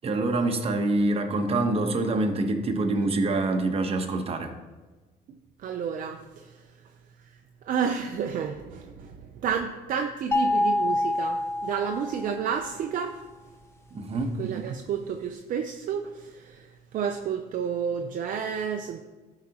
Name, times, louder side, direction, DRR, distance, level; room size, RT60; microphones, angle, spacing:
voice 1, 0.0-4.5 13.9-14.3, right 2 dB, 35° right, 5 dB, 1.0 m, -25 dB
voice 2, 5.6-6.6 7.6-13.2 14.4-19.0, right 7 dB, 55° right, 4 dB, 0.6 m, -31 dB
sound 1, 10.3-12.5, left 1 dB, 15° left, 0.6 m, -26 dB
13.0 x 4.9 x 2.9 m, 1.2 s
cardioid pair, 110°, 17 cm